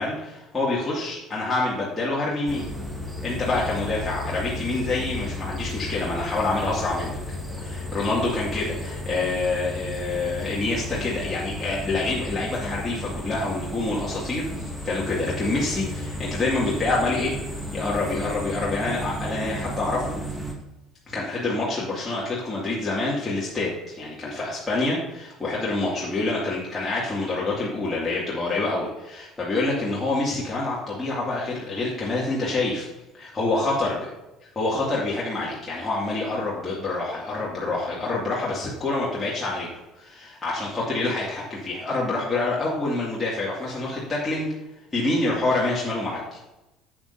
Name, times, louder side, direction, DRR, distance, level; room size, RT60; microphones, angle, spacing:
voice 1, 0.0-2.7 3.2-7.2 7.6-17.3 17.7-20.2 21.1-32.9 33.1-33.9 34.6-39.7 40.0-44.5 44.9-46.4, left 2 dB, 20° left, -6 dB, 2.3 m, -27 dB
sound 1, 2.5-20.5, left 1 dB, 5° right, 2.1 m, -33 dB
12.0 x 7.7 x 2.7 m, 0.99 s
figure-of-eight pair, 60°, 0 cm